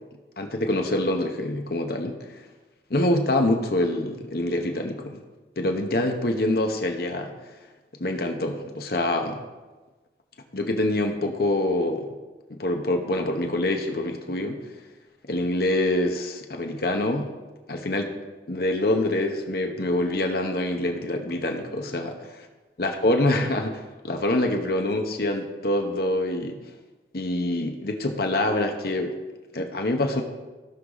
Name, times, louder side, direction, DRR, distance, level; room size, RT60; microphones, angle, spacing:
voice 1, 0.4-2.4 2.9-5.2 5.6-7.3 8.0-9.4 10.5-12.1 12.5-14.6 15.3-17.3 17.7-18.1 18.5-22.1 22.8-26.6 27.1-29.1 29.5-30.2, left 1 dB, 55° left, 4 dB, 1.0 m, -25 dB
16.5 x 6.2 x 4.0 m, 1.2 s
head